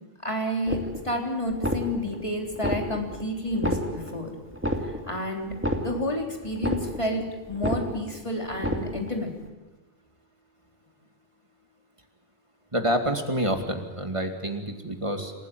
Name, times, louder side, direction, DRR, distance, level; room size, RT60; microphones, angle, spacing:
voice 1, 0.2-4.3 4.8-5.5 5.8-7.2 7.5-9.3, left 1 dB, 30° left, 1 dB, 3.7 m, -30 dB
sound 1, 0.7-1.2 1.5-2.2 2.5-3.2 3.5-4.2 4.5-5.2 5.5-6.2 6.5-7.2 7.5-8.2 8.5-9.2, equal, 10° right, 2.3 m, -30 dB
voice 2, 12.7-15.3, right 1 dB, 30° right, 5 dB, 2.4 m, -27 dB
27.0 x 15.0 x 9.4 m, 1.1 s
omnidirectional pair, 1.1 m